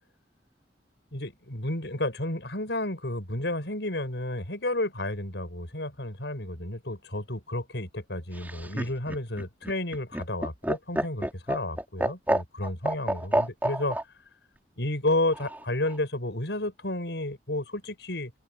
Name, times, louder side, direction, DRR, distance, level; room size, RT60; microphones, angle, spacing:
voice 1, 1.1-14.0 14.8-18.3, left 1 dB, 80° left, 5.5 m, -31 dB
Laughter, 8.3-14.0 15.3-16.0, right 1 dB, 10° right, 3.9 m, -29 dB
open air
head